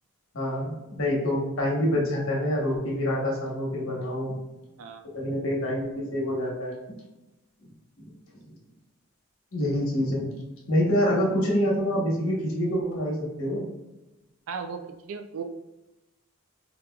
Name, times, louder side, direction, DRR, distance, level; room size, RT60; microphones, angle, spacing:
voice 1, 0.3-4.3 5.1-6.7 8.3-8.4 9.5-10.3 10.7-13.6, equal, 70° left, -3 dB, 1.0 m, -26 dB
voice 2, 14.5-15.4, right 6 dB, 75° right, 7 dB, 0.4 m, -36 dB
4.7 x 2.4 x 2.2 m, 1.0 s
head